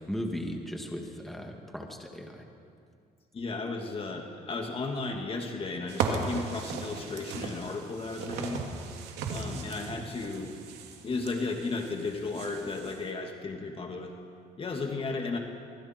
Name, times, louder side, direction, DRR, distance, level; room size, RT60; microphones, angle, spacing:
voice 1, 0.1-2.4, equal, ahead, 1 dB, 2.4 m, -37 dB
voice 2, 3.3-8.6 9.3-10.5 11.0-14.1 14.6-15.4, left 3 dB, 35° left, 2 dB, 2.2 m, -34 dB
sound 1, 5.9-13.0, right 5 dB, 85° right, 2.6 m, -36 dB
24.5 x 24.0 x 4.5 m, 2.3 s
cardioid pair, 110°, 17 cm